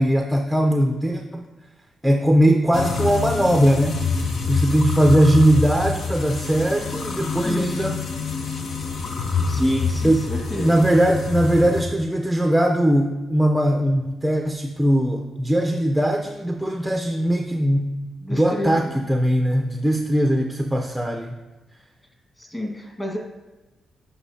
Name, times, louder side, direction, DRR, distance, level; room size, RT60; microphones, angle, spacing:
voice 1, 0.0-1.5 2.0-4.0 4.5-8.0 10.0-10.2 10.6-17.9 18.3-21.3, right 1 dB, 5° right, 2 dB, 0.5 m, -20 dB
sound 1, 2.7-11.8, left 5 dB, 65° left, 0.7 m, -26 dB
voice 2, 7.4-7.9 9.5-10.8 18.2-18.9 22.4-23.2, equal, 15° left, 1 dB, 1.6 m, -28 dB
7.9 x 5.6 x 2.8 m, 1.1 s
cardioid pair, 80°, 0 cm